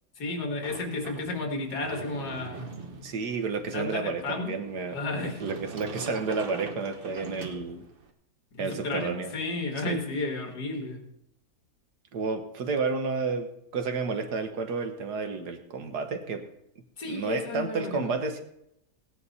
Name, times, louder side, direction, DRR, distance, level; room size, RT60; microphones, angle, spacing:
voice 1, 0.2-2.7 3.7-4.5 4.9-5.4 8.5-11.0 17.0-18.1, left 3 dB, 70° left, 3 dB, 2.4 m, -32 dB
Sliding door, 0.6-8.1, right 3 dB, 40° right, 1.0 m, -43 dB
voice 2, 3.0-7.9 8.6-9.3 9.9-10.0 12.1-16.4 17.1-18.4, right 4 dB, 75° right, 7 dB, 1.7 m, -31 dB
16.5 x 9.8 x 4.2 m, 0.79 s
omnidirectional pair, 1.8 m